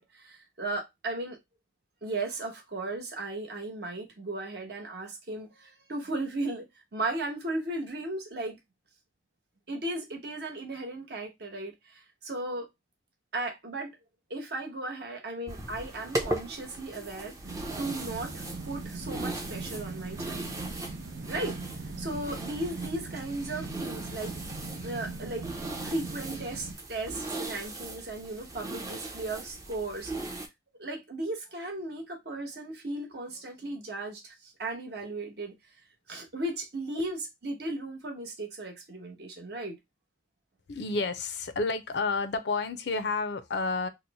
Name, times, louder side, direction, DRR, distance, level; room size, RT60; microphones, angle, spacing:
voice 1, 0.0-1.4 2.0-8.6 9.7-12.7 13.3-13.9 14.3-17.4 17.8-18.3 18.7-20.5 21.3-21.6 22.0-24.4 24.8-25.5 25.8-30.1 30.8-35.5 36.1-39.8, right 2 dB, 60° right, 1.0 m, -36 dB
sound 1, 15.5-30.5, right 2 dB, 20° right, 0.5 m, -39 dB
sound 2, 17.4-26.7, right 3 dB, 75° right, 0.7 m, -40 dB
voice 2, 40.7-43.9, left 3 dB, 65° left, 0.5 m, -30 dB
2.9 x 2.1 x 3.9 m
head